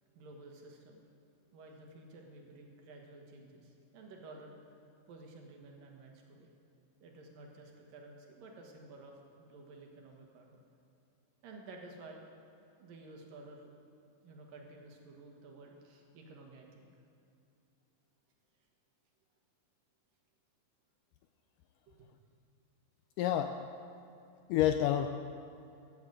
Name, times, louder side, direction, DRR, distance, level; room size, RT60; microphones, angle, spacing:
voice 1, 0.1-1.0 1.5-4.6 5.1-6.5 7.0-10.6 11.4-12.2 12.8-13.7 14.2-16.9 21.9-22.0, right 2 dB, 70° right, 1 dB, 3.3 m, -53 dB
voice 2, 23.2-23.6 24.5-25.1, left 11 dB, 80° left, 8 dB, 1.9 m, -28 dB
14.5 x 9.4 x 8.0 m, 2.6 s
omnidirectional pair, 4.2 m